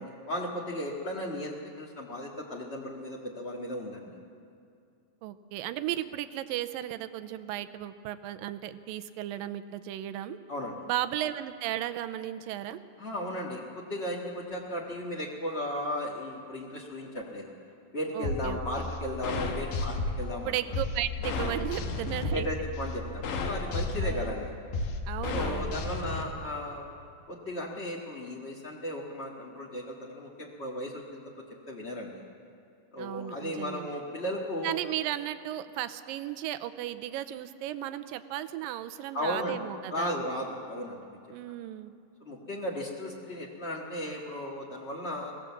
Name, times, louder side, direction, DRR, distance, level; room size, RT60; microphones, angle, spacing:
voice 1, 0.0-4.1 10.5-10.8 13.0-17.5 17.9-20.6 22.3-24.5 25.3-26.9 27.3-31.2 31.7-32.2 32.9-34.8 39.1-39.6 39.9-41.2 42.2-45.3, left 1 dB, 45° left, -3 dB, 0.8 m, -35 dB
voice 2, 5.2-10.4 10.9-12.8 18.1-18.9 20.5-22.5 24.0-24.3 25.1-25.7 33.0-33.9 34.6-40.2 41.3-41.9, right 13 dB, 80° right, 11 dB, 2.3 m, -35 dB
sound 1, 18.2-26.2, left 3 dB, 75° left, 3.1 m, -33 dB
23.0 x 16.5 x 7.3 m, 2.5 s
omnidirectional pair, 4.1 m